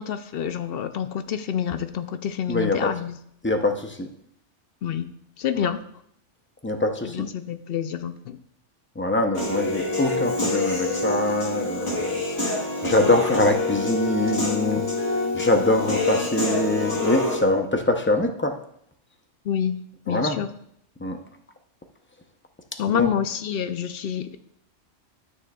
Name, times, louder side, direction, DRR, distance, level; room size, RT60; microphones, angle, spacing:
voice 1, 0.0-3.1 4.8-5.1 5.4-5.8 7.0-8.4 19.4-19.8 20.1-20.5 22.8-24.4, left 9 dB, 60° left, 10 dB, 0.7 m, -27 dB
voice 2, 2.5-2.9 3.4-4.1 5.6-5.7 6.6-7.3 9.0-18.6 20.1-20.4 21.0-21.2 22.9-23.1, left 2 dB, 15° left, 4 dB, 0.4 m, -24 dB
Human voice / Piano, 9.3-17.4, left 2 dB, 80° left, 2.8 m, -26 dB
12.5 x 6.4 x 2.3 m, 0.70 s
omnidirectional pair, 1.2 m